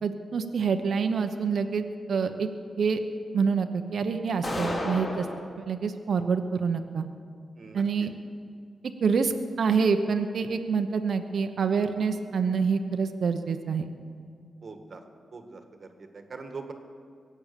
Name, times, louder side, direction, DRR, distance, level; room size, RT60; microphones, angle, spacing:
voice 1, 0.0-2.5 2.8-3.0 3.3-5.3 5.6-7.1 7.7-8.1 9.0-13.9, right 5 dB, 65° right, 7 dB, 0.9 m, -26 dB
sound 1, 4.4-5.4, left 1 dB, 35° left, 3.0 m, -31 dB
voice 2, 14.6-15.0 15.3-15.9 16.1-16.7, right 4 dB, 45° right, 6 dB, 1.6 m, -42 dB
22.5 x 8.8 x 6.8 m, 2.2 s
wide cardioid pair, 120°, 0 cm